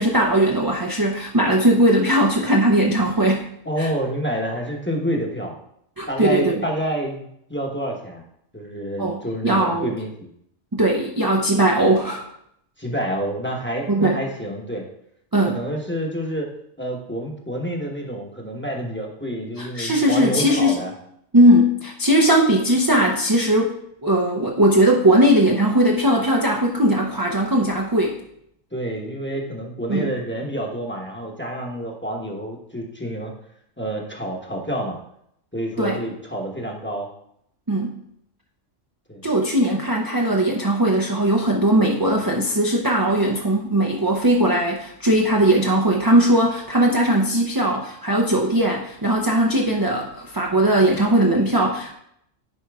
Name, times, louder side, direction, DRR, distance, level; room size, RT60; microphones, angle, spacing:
voice 1, 0.0-3.4 3.8-3.9 6.0-6.6 9.0-9.9 10.7-12.2 13.9-14.2 15.3-15.6 19.6-20.8 21.3-28.2 29.9-30.1 35.8-36.0 37.7-37.9 39.2-51.9, right 1 dB, 25° right, 0 dB, 0.5 m, -19 dB
voice 2, 3.6-5.6 6.1-8.2 8.5-10.3 12.8-14.9 15.4-16.5 16.8-20.9 28.7-33.3 33.8-35.0 35.5-37.1 39.1-39.2, equal, 10° left, 0 dB, 1.0 m, -28 dB
10.0 x 4.6 x 3.5 m, 0.73 s
omnidirectional pair, 1.4 m